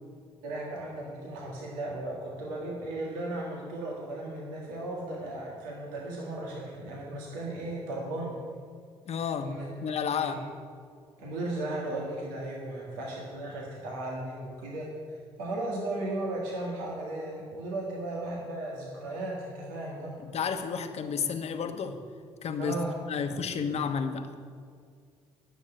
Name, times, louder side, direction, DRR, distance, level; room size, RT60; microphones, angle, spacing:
voice 1, 0.4-8.4 9.4-9.7 10.2-10.4 11.2-14.9 15.4-20.1 22.6-22.9, right 2 dB, 85° right, -3 dB, 1.8 m, -36 dB
voice 2, 9.1-9.6 9.8-10.4 20.2-22.0 22.4-22.8 23.1-24.3, left 6 dB, 55° left, 7 dB, 1.1 m, -31 dB
10.5 x 6.5 x 8.9 m, 2.1 s
hypercardioid pair, 55°, 13 cm